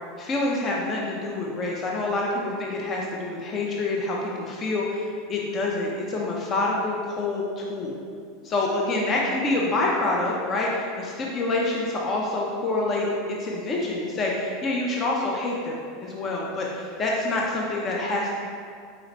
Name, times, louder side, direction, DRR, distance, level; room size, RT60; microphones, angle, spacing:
voice 1, 0.2-8.0 8.4-18.3, left 2 dB, 30° left, -2 dB, 0.6 m, -27 dB
4.3 x 2.9 x 3.9 m, 2.2 s
supercardioid pair, 125°, 0 cm